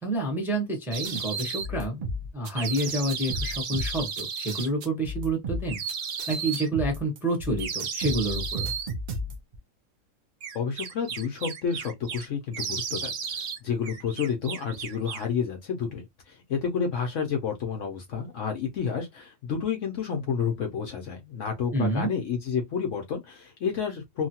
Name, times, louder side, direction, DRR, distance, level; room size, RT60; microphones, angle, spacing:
voice 1, 0.0-2.1 2.3-5.8 6.3-8.7 21.7-22.1, right 1 dB, ahead, 0.7 m, -28 dB
sound 1, 0.9-1.7 2.6-4.7 5.7-6.7 7.6-8.9 10.4-12.3 12.5-13.6 13.8-15.3, right 6 dB, 60° right, 0.9 m, -34 dB
sound 2, 0.9-9.6, equal, 85° right, 0.4 m, -34 dB
voice 2, 10.5-24.3, left 6 dB, 60° left, 0.9 m, -30 dB
3.1 x 2.2 x 2.8 m
omnidirectional pair, 1.6 m